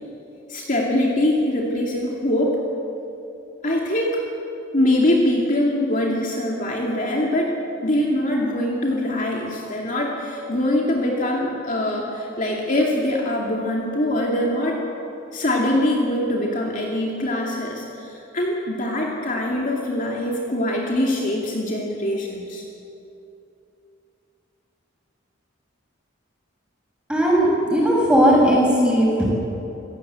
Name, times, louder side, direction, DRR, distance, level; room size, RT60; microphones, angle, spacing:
voice 1, 0.5-2.6 3.6-4.2 4.7-7.5 7.8-14.8 15.3-22.6, left 1 dB, 40° left, -2 dB, 2.5 m, -23 dB
voice 2, 27.1-29.3, equal, 5° right, -4 dB, 6.6 m, -17 dB
26.0 x 16.5 x 8.2 m, 2.8 s
head